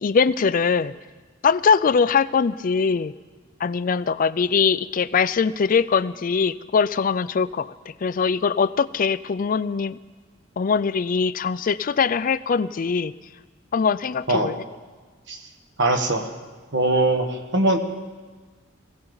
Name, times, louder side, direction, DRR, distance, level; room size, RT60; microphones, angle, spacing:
voice 1, 0.0-0.9 1.4-3.1 3.6-7.7 8.0-10.0 10.6-13.1 13.7-14.6, left 5 dB, 45° left, 15 dB, 0.4 m, -22 dB
voice 2, 15.8-16.3 16.7-17.8, right 2 dB, 60° right, 6 dB, 1.4 m, -21 dB
21.0 x 16.5 x 4.0 m, 1.4 s
head